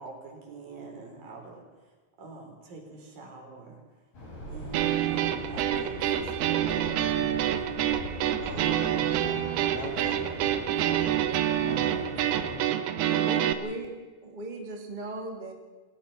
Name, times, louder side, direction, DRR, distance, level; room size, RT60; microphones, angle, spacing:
voice 1, 0.0-1.6 2.2-3.8 4.5-7.7 10.2-10.5, right 3 dB, 60° right, 2 dB, 5.9 m, -45 dB
sound 1, 4.1-12.6, left 1 dB, 60° left, 9.2 m, -41 dB
sound 2, 4.7-13.5, right 11 dB, 80° right, 3.0 m, -27 dB
voice 2, 8.4-10.3 11.6-12.8 13.2-13.5, left 3 dB, 45° left, 2 dB, 2.4 m, -42 dB
voice 3, 11.5-12.0 13.0-13.9 14.2-15.5, right 2 dB, 15° right, 2 dB, 1.7 m, -38 dB
28.0 x 16.5 x 5.7 m, 1.3 s
omnidirectional pair, 4.5 m